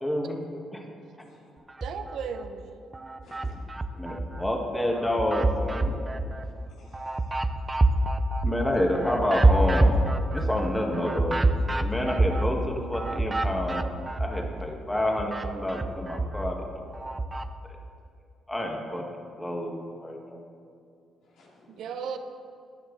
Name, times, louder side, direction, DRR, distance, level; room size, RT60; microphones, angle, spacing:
voice 1, 0.0-0.4 0.7-0.8 4.0-5.9 8.4-9.9 10.3-11.4 11.8-13.8 14.2-16.6 18.5-19.0 19.4-20.4, left 1 dB, 10° left, 0 dB, 1.7 m, -28 dB
sound 1, 1.7-2.5 2.9-4.5 4.9-14.6 14.9-17.5, right 2 dB, 20° right, 0.6 m, -27 dB
voice 2, 1.8-2.8 21.7-22.2, right 6 dB, 75° right, 7 dB, 0.8 m, -35 dB
voice 3, 3.2-3.5 6.4-7.4 10.4-10.5 21.2-22.1, left 2 dB, 85° left, -5 dB, 3.2 m, -57 dB
14.5 x 10.0 x 3.3 m, 2.3 s
cardioid pair, 90°, 0 cm